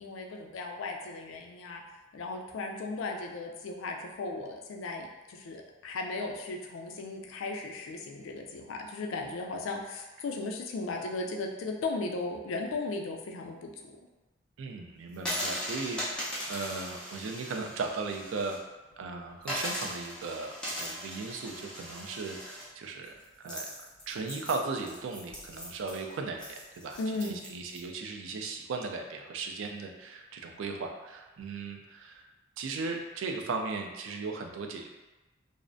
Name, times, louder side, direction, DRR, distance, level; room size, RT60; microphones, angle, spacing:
voice 1, 0.0-1.8 2.1-13.9 27.0-27.4, left 3 dB, 85° left, 2 dB, 0.4 m, -36 dB
voice 2, 14.6-18.6 19.0-23.7 24.1-32.2 32.6-34.9, right 4 dB, 80° right, 3 dB, 0.3 m, -37 dB
sound 1, 15.1-18.6 18.9-19.0 19.4-27.8, equal, 5° left, 0.5 m, -39 dB
2.4 x 2.0 x 2.5 m, 1.1 s
head